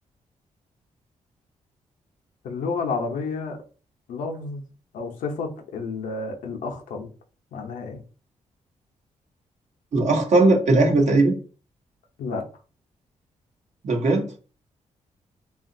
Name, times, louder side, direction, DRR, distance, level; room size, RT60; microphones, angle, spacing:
voice 1, 2.4-3.6 4.1-4.6 4.9-7.1 7.5-8.0 12.2-12.4, left 4 dB, 85° left, 0.6 m, -30 dB
voice 2, 9.9-11.4 13.8-14.3, right 2 dB, 65° right, 0.9 m, -18 dB
2.8 x 2.4 x 2.6 m
cardioid pair, 70°, 13 cm